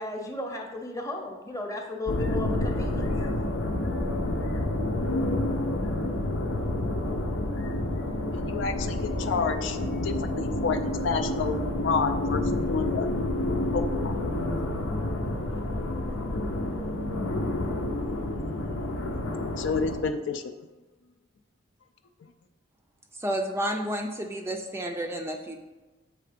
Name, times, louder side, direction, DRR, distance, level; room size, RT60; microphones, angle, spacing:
voice 1, 0.0-3.1, left 2 dB, 15° left, 1 dB, 0.8 m, -34 dB
sound 1, 2.1-20.0, left 1 dB, 90° left, 0.8 m, -29 dB
voice 2, 8.3-9.8 10.0-12.4 12.7-13.1 13.7-14.2 19.6-20.4, left 5 dB, 65° left, 7 dB, 0.4 m, -29 dB
voice 3, 23.1-25.6, right 1 dB, 15° right, 3 dB, 0.4 m, -31 dB
7.6 x 3.3 x 5.0 m, 1.2 s
head